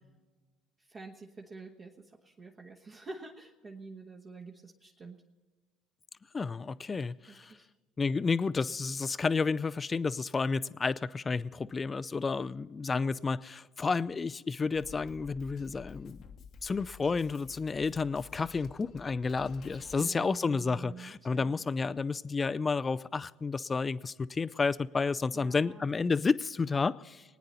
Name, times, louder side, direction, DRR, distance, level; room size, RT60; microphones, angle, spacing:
voice 1, 0.9-5.2 7.3-7.7 19.7-21.7 25.3-25.8, right 3 dB, 35° right, 1.4 m, -48 dB
voice 2, 6.3-7.5 8.0-16.2 16.6-27.2, left 4 dB, 25° left, 0.5 m, -31 dB
Drum kit, 14.8-19.9, left 6 dB, 50° left, 1.0 m, -51 dB
22.5 x 9.6 x 4.1 m
hypercardioid pair, 65°, 0 cm